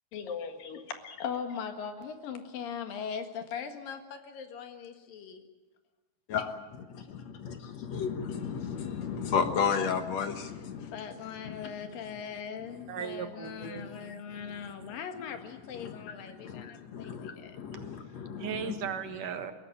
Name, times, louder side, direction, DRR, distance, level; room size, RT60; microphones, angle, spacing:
voice 1, 0.1-5.4 10.8-17.6, left 7 dB, 80° left, 3.5 m, -40 dB
voice 2, 6.3-11.0 11.4-12.0 13.6-14.5 14.8-14.9 15.7-18.8, left 6 dB, 60° left, 2.2 m, -34 dB
voice 3, 12.9-14.4 17.7-17.8 18.4-19.5, right 8 dB, 70° right, 2.9 m, -38 dB
22.0 x 16.5 x 9.0 m
omnidirectional pair, 3.9 m